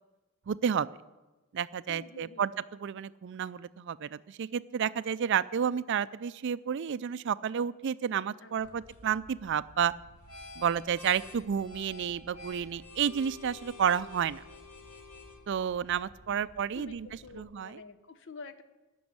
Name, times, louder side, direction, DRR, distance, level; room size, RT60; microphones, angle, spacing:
voice 1, 0.5-0.9 1.5-2.5 2.8-9.9 10.6-14.4 15.5-17.1 17.4-17.8, right 8 dB, 55° right, 17 dB, 0.4 m, -31 dB
voice 2, 1.9-2.5 8.4-8.8 16.3-16.5 16.7-18.6, left 4 dB, 55° left, 11 dB, 0.8 m, -48 dB
sound 1, 8.6-17.4, left 2 dB, 85° left, 2.6 m, -50 dB
14.5 x 6.2 x 9.6 m, 1.1 s
head